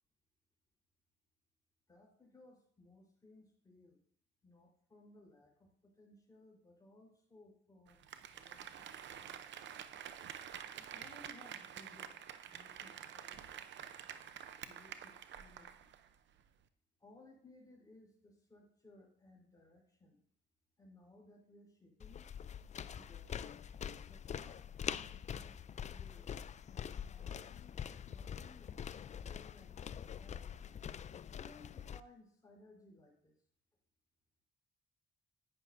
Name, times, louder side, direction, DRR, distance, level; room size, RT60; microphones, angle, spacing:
voice 1, 1.9-4.0 4.4-9.6 10.8-12.2 12.5-13.7 14.0-15.9 17.0-20.2 20.8-22.3 22.9-23.5 24.1-25.5 25.9-26.4 26.7-27.8 28.1-28.7 29.2-30.6 31.2-33.4, left 2 dB, 20° left, -1 dB, 4.0 m, -62 dB
Applause, 7.9-16.1 16.4-16.5, right 9 dB, 65° right, 0.7 m, -49 dB
sound 1, 22.0-32.0, left 8 dB, 35° left, 0.4 m, -45 dB
11.5 x 9.4 x 2.6 m, 0.64 s
cardioid pair, 90°, 20 cm